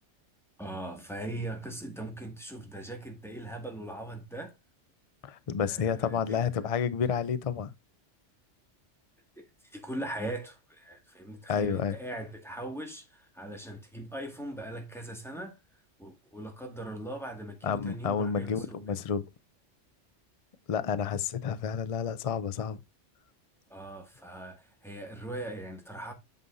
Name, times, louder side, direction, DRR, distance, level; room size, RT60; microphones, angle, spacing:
voice 1, 0.6-4.5 5.6-6.5 9.4-15.6 16.0-19.0 23.7-26.1, right 1 dB, ahead, 1.8 m, -40 dB
voice 2, 5.2-7.7 11.5-12.0 17.6-19.2 20.7-22.8, left 7 dB, 45° left, 0.4 m, -30 dB
9.0 x 5.5 x 2.6 m
omnidirectional pair, 1.3 m